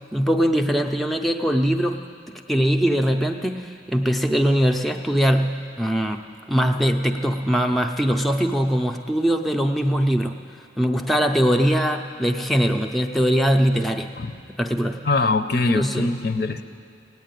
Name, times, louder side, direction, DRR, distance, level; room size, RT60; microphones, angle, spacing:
voice 1, 0.1-2.0 2.3-6.2 6.5-10.4 10.8-14.1 14.6-15.0 15.7-16.1, equal, ahead, 3 dB, 0.5 m, -21 dB
voice 2, 15.0-16.6, left 3 dB, 55° left, 9 dB, 0.6 m, -22 dB
17.0 x 9.3 x 9.0 m, 2.4 s
head